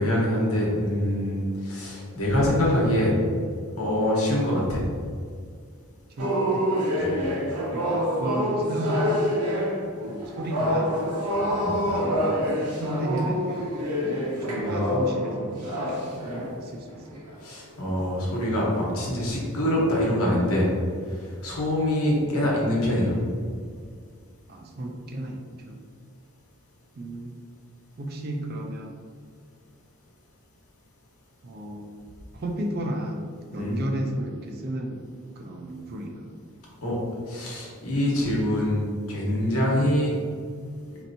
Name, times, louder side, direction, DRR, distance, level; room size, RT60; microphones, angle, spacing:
voice 1, 0.0-3.2 3.7-4.8 7.0-7.1 11.6-11.8 14.6-15.0 17.4-20.7 21.1-23.1 33.5-33.7 36.8-37.0 37.3-40.2, left 1 dB, 75° left, -4 dB, 1.0 m, -25 dB
voice 2, 6.2-6.7 7.7-9.5 10.0-11.0 11.9-13.7 14.4-17.2 24.5-25.8 26.9-27.4 28.0-28.9 31.4-31.9 32.3-35.1 35.4-36.3, right 1 dB, 45° right, 2 dB, 0.4 m, -33 dB
sound 1, 6.2-16.6 17.1-17.3 17.9-18.2 18.6-18.9, equal, 90° right, 0.9 m, -27 dB
4.4 x 2.8 x 2.6 m, 2.1 s
head